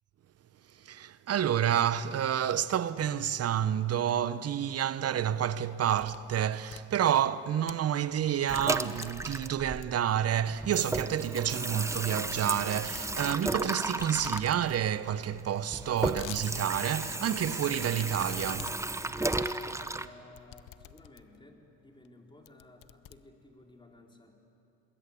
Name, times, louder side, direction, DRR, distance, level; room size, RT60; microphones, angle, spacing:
voice 1, 0.7-18.8, right 10 dB, 45° right, 1.0 m, -29 dB
sound 1, 5.4-6.3 6.6-7.8 8.3-8.7 9.0-9.3 9.8-10.2 10.6-10.7 11.0-11.1 11.3-11.5 11.8-12.1 12.9-13.7 14.0-14.5 14.8-14.9 15.1-15.2 15.7-16.5 16.9-17.0 17.9-21.5 22.0-22.1 22.5-23.7, left 14 dB, 60° left, 1.0 m, -47 dB
Water tap faucet / Sink (filling or washing), 8.5-10.3 10.6-20.1, right 2 dB, 10° right, 0.9 m, -34 dB
voice 2, 19.7-24.3, left 2 dB, 15° left, 4.5 m, -55 dB
27.0 x 21.0 x 8.5 m
supercardioid pair, 80°, 35 cm